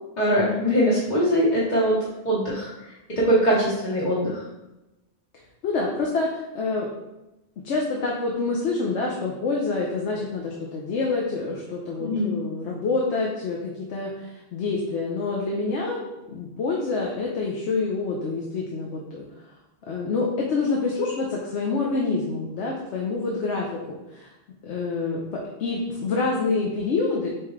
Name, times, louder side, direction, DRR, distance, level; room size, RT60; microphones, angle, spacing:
voice 1, 0.2-2.0 2.2-2.7 3.1-4.4 12.0-12.3, equal, 45° left, -8 dB, 1.0 m, -22 dB
voice 2, 5.6-6.9 7.6-16.0 16.3-19.2 19.9-24.3 24.6-25.2 25.6-27.3, left 3 dB, 85° left, -2 dB, 1.0 m, -27 dB
4.6 x 3.6 x 3.2 m, 0.96 s
omnidirectional pair, 1.1 m